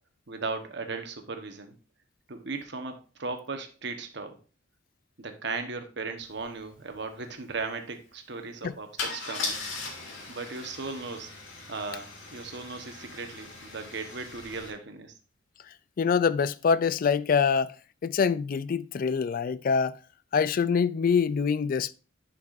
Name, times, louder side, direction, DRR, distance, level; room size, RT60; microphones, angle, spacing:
voice 1, 0.3-1.8 2.3-4.4 5.2-9.7 10.3-11.3 11.7-15.1, right 4 dB, 60° right, 1.1 m, -37 dB
Car / Engine starting / Idling, 6.4-6.5 6.7-7.0 9.0-14.7, left 3 dB, 90° left, 2.1 m, -39 dB
voice 2, 16.0-17.7 18.0-20.0 20.3-21.9, left 6 dB, 45° left, 0.3 m, -25 dB
10.0 x 5.8 x 2.5 m
head